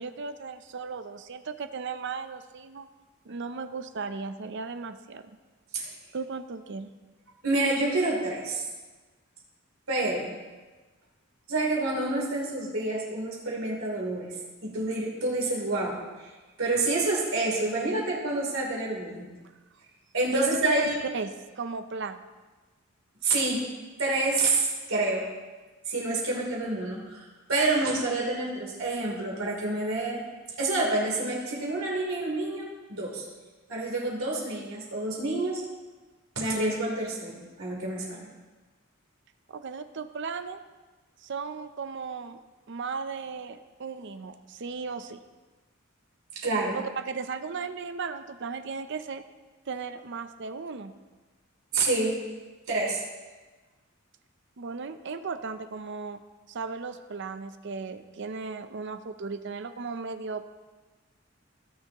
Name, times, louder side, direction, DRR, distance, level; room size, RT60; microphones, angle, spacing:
voice 1, 0.0-2.9 3.3-5.2 6.1-6.9 20.3-22.2 39.5-40.6 41.2-42.4 42.7-45.2 46.7-49.2 49.7-50.9 54.6-56.2 56.5-60.4, right 5 dB, 55° right, 10 dB, 0.6 m, -35 dB
voice 2, 7.4-8.6 9.9-10.3 11.5-14.3 14.6-16.3 16.6-19.3 20.1-21.0 23.2-23.6 24.0-25.3 25.9-30.2 30.6-33.2 33.7-35.6 36.3-38.3 46.3-46.8 51.7-52.1 52.7-53.0, right 2 dB, 80° right, -3 dB, 3.2 m, -28 dB
17.0 x 6.9 x 3.0 m, 1.3 s
head